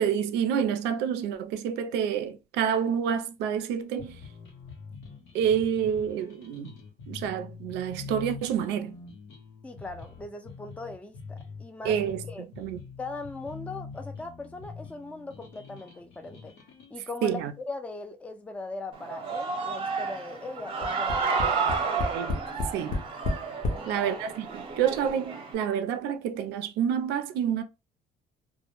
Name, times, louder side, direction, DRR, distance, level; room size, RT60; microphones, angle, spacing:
voice 1, 0.0-4.2 5.3-6.8 7.1-9.0 11.8-12.2 12.6-12.8 17.2-17.5 22.1-22.3 22.7-23.0 23.9-27.6, right 8 dB, 85° right, 0.4 m, -28 dB
sound 1, 4.0-16.9, left 4 dB, 85° left, 0.8 m, -44 dB
voice 2, 9.6-12.0 12.3-12.5 13.0-16.6 16.9-22.2 23.7-24.0, left 3 dB, 10° left, 0.4 m, -40 dB
Human voice / Cheering, 18.9-25.5, right 5 dB, 30° right, 0.6 m, -31 dB
Tap, 20.8-23.9 24.7-24.8 25.1-25.2, left 3 dB, 55° left, 0.6 m, -31 dB
2.1 x 2.0 x 2.9 m
cardioid pair, 110°, 17 cm